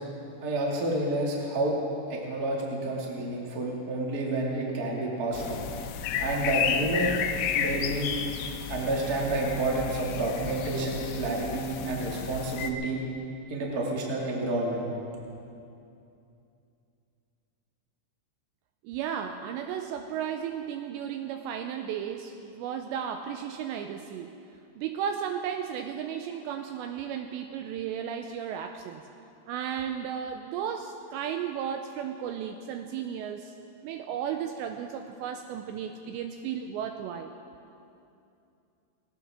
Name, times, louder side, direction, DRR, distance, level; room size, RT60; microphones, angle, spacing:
voice 1, 0.4-1.7 2.1-5.7 6.2-7.1 7.5-8.1 8.7-13.0 13.5-14.9, right 2 dB, 70° right, -2 dB, 0.8 m, -29 dB
sound 1, 5.3-12.7, left 8 dB, 85° left, 2.8 m, -32 dB
voice 2, 18.8-24.3 24.8-29.0 29.5-33.5 33.8-37.3, right 8 dB, 90° right, 6 dB, 2.5 m, -34 dB
19.0 x 18.0 x 3.6 m, 2.7 s
omnidirectional pair, 5.6 m